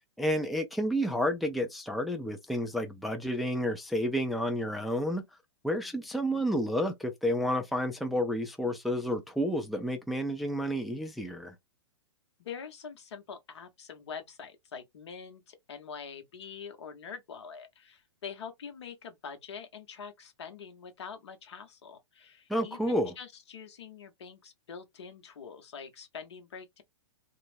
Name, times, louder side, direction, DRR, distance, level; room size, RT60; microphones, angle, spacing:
voice 1, 0.2-5.2 5.6-11.5 22.5-23.1, equal, ahead, 0.4 m, -30 dB
voice 2, 12.4-26.8, left 6 dB, 70° left, 0.9 m, -45 dB
2.4 x 2.0 x 3.2 m
hypercardioid pair, 115°, 15 cm